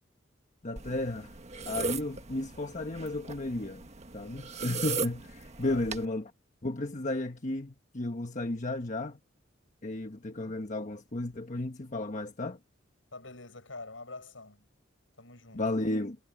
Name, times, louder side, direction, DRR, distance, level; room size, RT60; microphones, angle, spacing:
voice 1, 0.6-1.3 1.7-3.8 4.1-6.3 6.6-9.2 9.8-12.6 15.5-16.2, left 2 dB, 40° left, 1.3 m, -33 dB
sound 1, 0.8-6.1, right 4 dB, 35° right, 1.5 m, -38 dB
voice 2, 5.6-6.0 13.1-14.7 15.2-15.7, left 3 dB, 85° left, 7.9 m, -46 dB
head